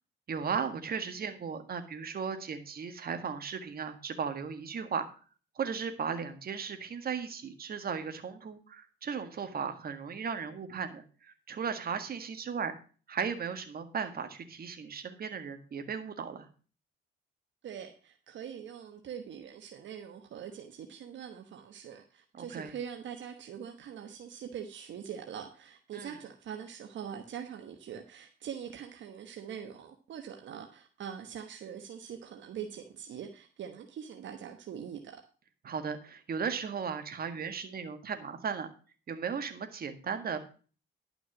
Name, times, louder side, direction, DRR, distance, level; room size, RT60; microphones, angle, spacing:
voice 1, 0.3-5.1 5.5-12.7 13.1-16.5 22.4-22.8 25.9-26.2 35.6-38.7 39.1-40.4, right 6 dB, 50° right, 1.8 m, -36 dB
voice 2, 17.6-35.2, right 8 dB, 70° right, 1.2 m, -43 dB
11.5 x 6.0 x 6.1 m
cardioid pair, 90°, 20 cm